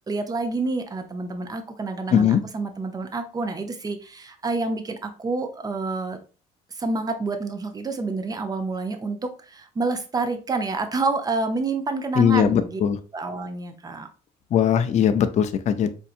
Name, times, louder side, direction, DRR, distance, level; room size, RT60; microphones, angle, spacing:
voice 1, 0.1-6.2 6.7-12.8 13.1-14.1, right 3 dB, 20° right, 7 dB, 0.6 m, -28 dB
voice 2, 2.1-2.4 12.2-13.0 14.5-15.9, left 8 dB, 45° left, 9 dB, 0.5 m, -20 dB
4.6 x 2.7 x 2.5 m, 0.35 s
cardioid pair, 110°, 17 cm